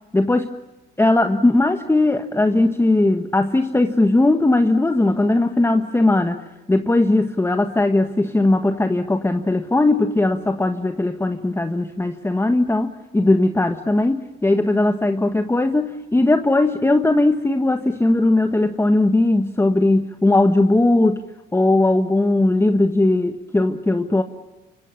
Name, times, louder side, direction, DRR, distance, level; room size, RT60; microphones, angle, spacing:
voice 1, 0.1-0.5 1.0-6.4 6.7-21.2 21.5-24.2, left 2 dB, 10° left, 7 dB, 1.5 m, -18 dB
28.0 x 25.0 x 7.2 m, 1.1 s
cardioid pair, 90°, 20 cm